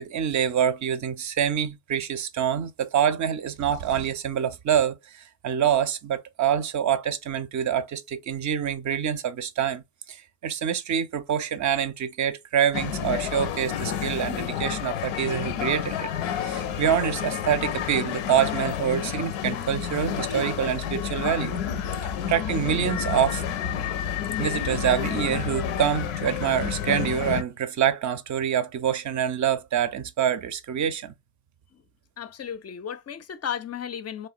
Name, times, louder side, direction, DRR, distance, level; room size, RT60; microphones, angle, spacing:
voice 1, 0.0-9.8 10.1-10.2 10.4-16.1 16.4-21.6 22.2-23.4 24.4-31.1, right 9 dB, 40° right, 0.5 m, -26 dB
sound 1, 3.4-4.3, right 8 dB, 90° right, 0.6 m, -41 dB
sound 2, 12.7-27.4, left 9 dB, 80° left, 0.6 m, -30 dB
voice 2, 32.2-34.3, left 8 dB, 35° left, 0.4 m, -34 dB
3.0 x 2.1 x 2.4 m
supercardioid pair, 65°, 48 cm